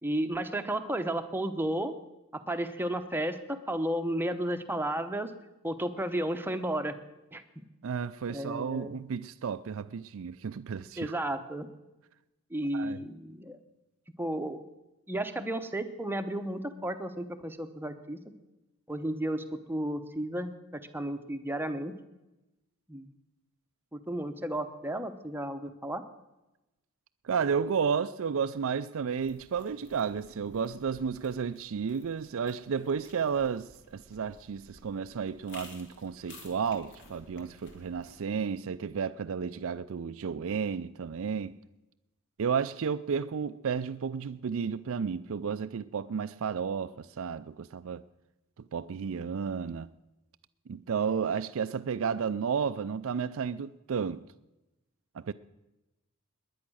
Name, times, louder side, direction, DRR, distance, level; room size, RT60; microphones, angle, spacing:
voice 1, 0.0-1.9 2.3-5.3 5.6-7.0 7.3-7.6 8.3-9.0 11.0-11.7 12.5-13.6 14.2-14.6 15.1-18.3 18.9-21.9 22.9-23.1 23.9-26.0, right 1 dB, 10° right, 0.9 m, -33 dB
voice 2, 7.8-11.1 12.7-13.0 27.2-41.5 42.4-48.0 48.7-49.9 50.7-54.2 55.1-55.3, right 6 dB, 65° right, 0.4 m, -32 dB
sound 1, 29.2-38.2, left 2 dB, 55° left, 2.5 m, -55 dB
20.0 x 10.0 x 6.3 m
head